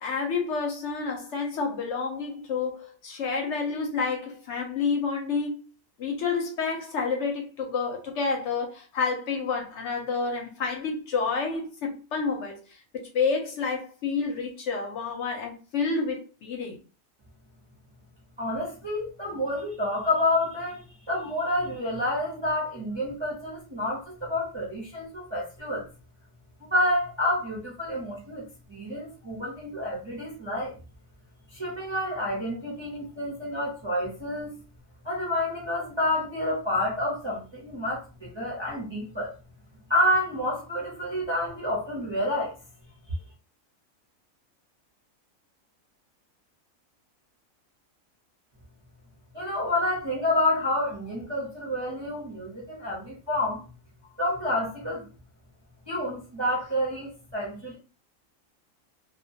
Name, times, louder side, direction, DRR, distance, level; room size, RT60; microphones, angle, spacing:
voice 1, 0.0-5.6 6.0-12.6 12.9-16.8, left 4 dB, 65° left, 0.8 m, -29 dB
voice 2, 18.4-25.8 26.6-30.7 31.5-34.6 35.0-39.3 39.9-42.6 49.3-53.6 54.2-55.1 55.9-57.8, left 1 dB, 30° right, 0.5 m, -29 dB
2.2 x 2.2 x 2.6 m
omnidirectional pair, 1.4 m